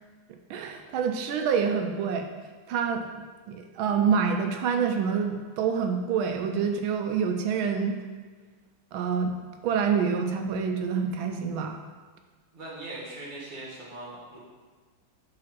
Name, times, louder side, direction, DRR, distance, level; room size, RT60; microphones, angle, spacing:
voice 1, 0.5-2.3 2.7-3.1 3.5-8.0 8.9-9.3 9.6-11.8, right 6 dB, 90° right, 5 dB, 1.4 m, -27 dB
voice 2, 12.5-14.4, right 2 dB, 25° right, -6 dB, 1.4 m, -40 dB
5.1 x 4.1 x 5.8 m, 1.4 s
omnidirectional pair, 2.2 m